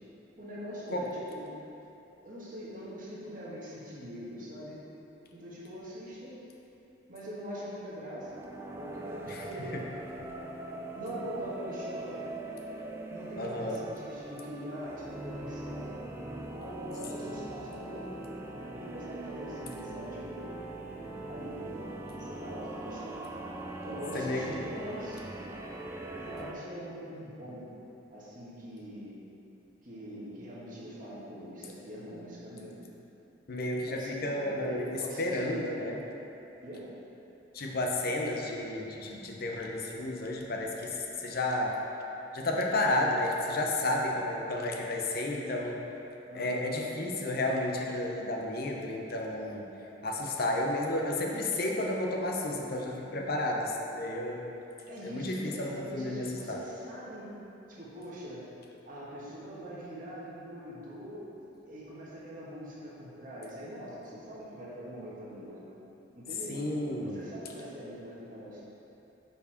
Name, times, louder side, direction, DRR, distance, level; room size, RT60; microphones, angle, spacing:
voice 1, 0.4-1.5 2.2-4.8 5.3-6.4 7.1-8.4 8.8-9.7 10.6-10.7 10.9-12.3 13.1-15.9 16.6-18.2 18.7-20.5 21.2-21.8 22.2-23.1 23.9-25.2 26.2-27.7 28.1-29.1 29.8-32.8 33.9-35.6 36.6-36.8 46.3-46.9 54.8-57.3 57.7-58.5 58.8-61.3 61.6-65.6 66.1-68.6, equal, 50° right, -7 dB, 1.4 m, -43 dB
sound 1, 8.1-26.5, right 2 dB, 15° right, 0.4 m, -41 dB
voice 2, 13.4-13.8 17.2-17.4 24.1-24.6 33.5-36.0 37.5-41.8 42.3-45.8 46.3-49.7 50.0-54.4 55.0-56.6 66.5-67.2, left 1 dB, 55° left, 0 dB, 0.7 m, -32 dB
5.5 x 4.4 x 5.1 m, 3.0 s
head